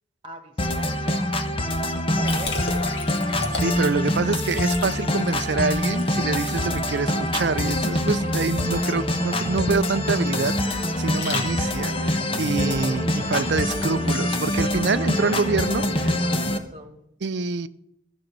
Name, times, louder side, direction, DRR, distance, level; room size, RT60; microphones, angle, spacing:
voice 1, 0.2-2.7 13.7-14.5 15.9-17.0, right 1 dB, 25° right, 1.7 m, -42 dB
sound 1, 0.6-16.6, left 1 dB, 30° left, 1.1 m, -25 dB
Liquid, 2.2-11.9, left 3 dB, 60° left, 2.6 m, -36 dB
voice 2, 3.6-16.1 17.2-17.7, right 4 dB, 65° right, 0.5 m, -26 dB
14.5 x 6.4 x 7.5 m
head